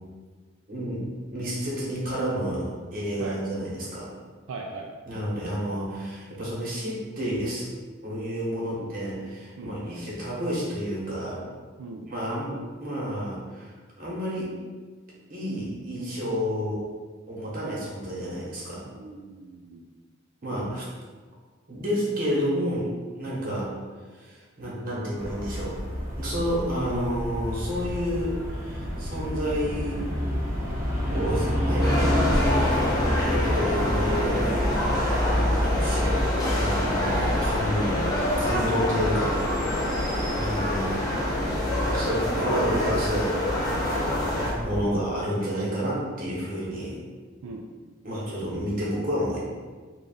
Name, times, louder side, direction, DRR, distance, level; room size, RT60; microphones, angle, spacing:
voice 1, 0.7-1.0 1.3-2.6 2.9-4.1 5.1-7.7 8.0-11.4 12.1-12.5 12.8-13.7 14.0-14.5 15.3-16.8 17.3-18.8 20.4-20.9 21.7-22.9 23.2-23.7 24.2-25.8 26.2-30.0 31.1-32.9 33.2-34.6 35.3-36.1 36.5-38.1 38.4-39.8 40.3-41.2 41.9-46.9 47.4-47.5 48.0-49.4, equal, 45° right, -6 dB, 1.2 m, -30 dB
voice 2, 4.5-4.9 8.7-9.0 9.6-9.8 11.8-12.1 18.9-19.9 39.8-40.2 47.4-47.7, right 3 dB, 80° right, 0 dB, 0.4 m, -39 dB
sound 1, 25.2-44.9, equal, 15° right, 0.8 m, -29 dB
sound 2, 31.8-44.5, left 1 dB, 20° left, 0.7 m, -27 dB
3.4 x 2.4 x 3.9 m, 1.4 s
head